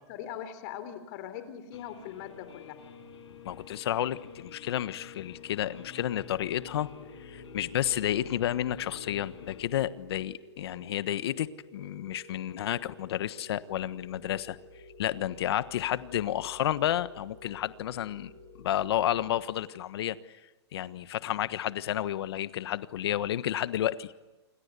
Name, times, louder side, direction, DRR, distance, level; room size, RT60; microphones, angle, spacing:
voice 1, 0.1-2.8, left 10 dB, 40° left, 11 dB, 3.8 m, -41 dB
Guitar, 1.7-9.6, left 6 dB, 80° left, 5.4 m, -49 dB
voice 2, 3.4-6.9 7.2-14.6 15.0-18.3 18.6-20.2 20.7-24.1, left 12 dB, 60° left, 14 dB, 1.4 m, -31 dB
sound 1, 6.3-19.4, right 1 dB, 50° right, 6.5 m, -54 dB
28.5 x 23.5 x 8.4 m, 1.1 s
hypercardioid pair, 155°, 15 cm